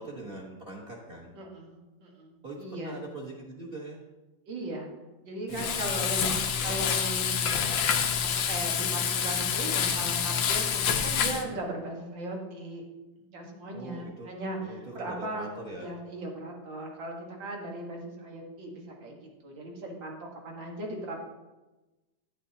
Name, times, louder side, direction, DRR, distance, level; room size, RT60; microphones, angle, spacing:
voice 1, 0.0-1.3 2.4-4.0 5.5-6.1 11.2-11.6 13.7-14.3 14.6-15.9, right 1 dB, 35° right, -3 dB, 1.3 m, -42 dB
voice 2, 1.3-3.0 4.5-4.9 5.2-7.9 8.2-12.8 13.3-15.5 15.8-20.2 20.4-21.2, right 2 dB, 90° right, 0 dB, 2.3 m, -38 dB
Frying (food), 5.5-11.4, left 7 dB, 85° left, 1.5 m, -27 dB
10.5 x 9.2 x 2.8 m, 1.1 s
omnidirectional pair, 2.0 m